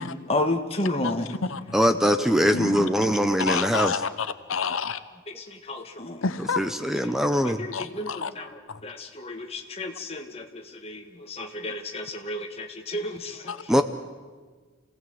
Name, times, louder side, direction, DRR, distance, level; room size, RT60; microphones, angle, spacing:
voice 1, 0.0-1.4 2.2-2.7 3.4-3.5 5.3-6.4 7.0-13.8, left 1 dB, 30° left, 4 dB, 1.6 m, -33 dB
voice 2, 1.7-3.9 6.6-7.6 13.7-13.8, equal, ahead, 8 dB, 0.7 m, -22 dB
voice 3, 2.5-5.0 6.2-6.7 7.7-8.3 8.7-8.8 13.5-13.6, left 5 dB, 80° left, 12 dB, 0.9 m, -30 dB
27.5 x 17.5 x 7.9 m, 1.5 s
head